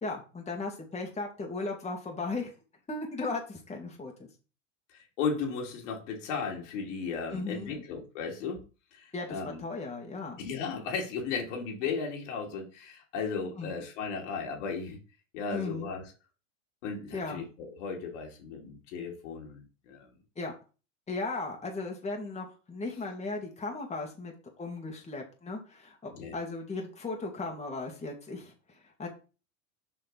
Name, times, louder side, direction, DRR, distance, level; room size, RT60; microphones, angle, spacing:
voice 1, 0.0-2.5 2.9-4.3 7.3-7.8 9.1-10.4 13.6-13.8 15.5-15.9 17.1-17.4 20.4-20.5 21.1-29.1, left 3 dB, 15° left, 2.1 m, -37 dB
voice 2, 4.9-8.6 8.9-9.6 10.4-15.0 15.3-16.0 16.8-20.1 26.1-26.3, left 5 dB, 70° left, 2.9 m, -35 dB
7.0 x 5.3 x 4.1 m
hypercardioid pair, 90°, 38 cm